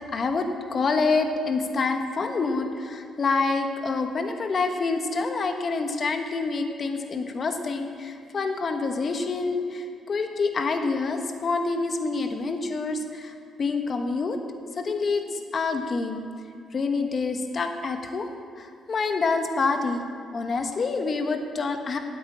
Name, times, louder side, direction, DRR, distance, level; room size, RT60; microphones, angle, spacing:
voice 1, 0.1-13.3 13.6-14.4 14.8-15.2 15.5-16.2 16.7-20.0 20.3-22.0, left 4 dB, 45° left, 5 dB, 1.3 m, -27 dB
9.4 x 8.8 x 8.6 m, 2.4 s
cardioid pair, 90°, 0 cm